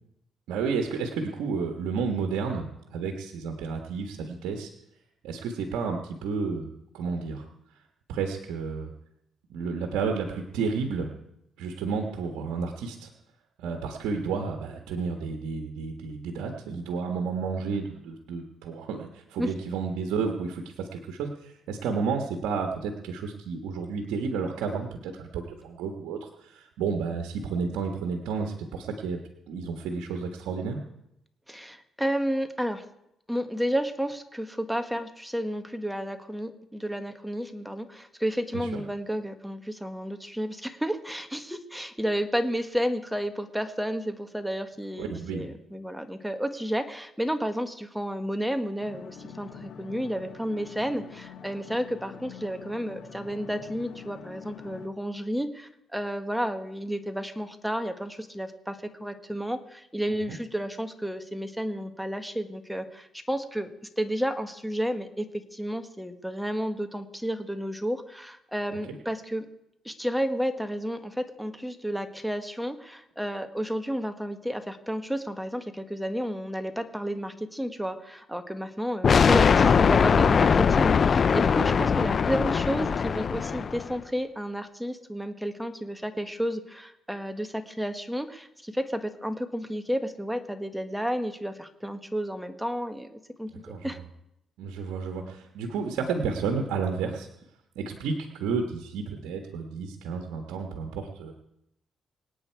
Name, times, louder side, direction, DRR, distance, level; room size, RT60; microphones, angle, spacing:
voice 1, 0.5-4.7 5.2-7.5 8.1-8.9 9.5-11.1 11.6-13.1 13.6-29.2 29.5-30.8 38.5-38.8 45.0-45.5 60.3-60.4 93.6-93.9 94.6-97.3 97.7-101.3, right 5 dB, 90° right, 3 dB, 1.5 m, -31 dB
voice 2, 31.5-32.9 33.3-63.7 64.0-69.5 69.8-93.5 93.8-94.0, equal, ahead, 7 dB, 1.5 m, -31 dB
sound 1, 48.8-54.9, left 7 dB, 70° left, 1.6 m, -45 dB
sound 2, 79.0-83.9, left 6 dB, 45° left, 0.6 m, -21 dB
25.5 x 8.9 x 4.7 m, 0.82 s
cardioid pair, 90°, 0 cm